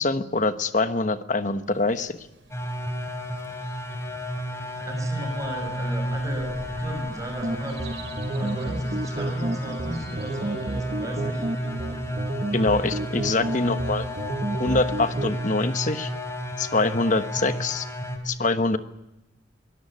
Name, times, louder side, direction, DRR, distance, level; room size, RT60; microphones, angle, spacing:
voice 1, 0.0-2.2 12.5-14.0 14.6-16.1 16.6-17.9 18.2-18.8, left 3 dB, 45° left, 10 dB, 1.2 m, -24 dB
sound 1, 1.7-14.4, right 3 dB, 85° right, 5.8 m, -50 dB
sound 2, 2.5-18.2, equal, 15° left, 3.4 m, -32 dB
voice 2, 4.8-11.5, right 1 dB, 20° right, 4 dB, 5.7 m, -36 dB
sound 3, 7.4-15.4, right 2 dB, 40° right, 0.9 m, -31 dB
23.0 x 17.0 x 9.7 m, 0.91 s
head